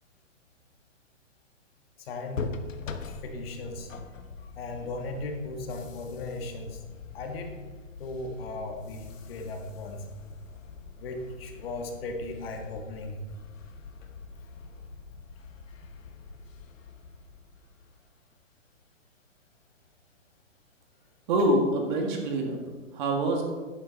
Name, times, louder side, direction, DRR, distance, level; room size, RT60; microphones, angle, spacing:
voice 1, 2.0-2.5 2.9-3.0 3.2-3.9 4.4-6.8 7.1-7.5 8.0-10.1 11.0-13.2, left 2 dB, 50° left, 3 dB, 1.8 m, -37 dB
sound 1, 2.3-18.1, left 4 dB, 90° left, 1.2 m, -43 dB
voice 2, 21.3-22.6 22.9-23.4, right 1 dB, 40° right, 2 dB, 2.0 m, -25 dB
11.0 x 9.6 x 4.0 m, 1.3 s
hypercardioid pair, 145°, 38 cm